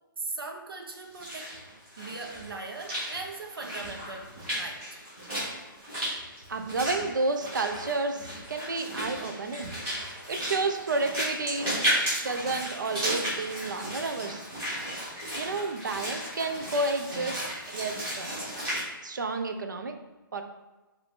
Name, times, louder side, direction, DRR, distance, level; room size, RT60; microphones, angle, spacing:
voice 1, 0.2-1.5 2.0-5.0, right 3 dB, 80° right, 1 dB, 0.9 m, -39 dB
Walk footsteps / Splash splatter, 1.0-18.8, equal, 15° right, 1.2 m, -34 dB
voice 2, 6.5-9.7 10.3-11.8 12.2-14.4 15.3-17.4 17.7-18.4 19.0-19.9 20.3-20.4, right 3 dB, 55° right, 6 dB, 0.6 m, -31 dB
5.3 x 2.7 x 3.6 m, 1.1 s
hypercardioid pair, 180°, 12 cm